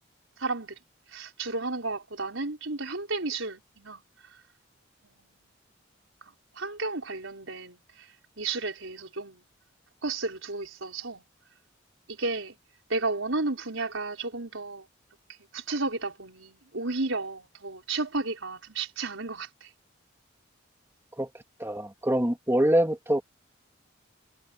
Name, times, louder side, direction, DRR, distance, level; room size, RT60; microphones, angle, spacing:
voice 1, 0.4-0.8 1.1-4.0 5.0-5.3 6.3-8.1 8.4-9.4 10.0-11.2 12.1-12.6 12.9-14.9 15.5-19.7, right 3 dB, 80° right, 4.8 m, -33 dB
voice 2, 21.6-23.2, right 1 dB, 15° right, 2.6 m, -24 dB
head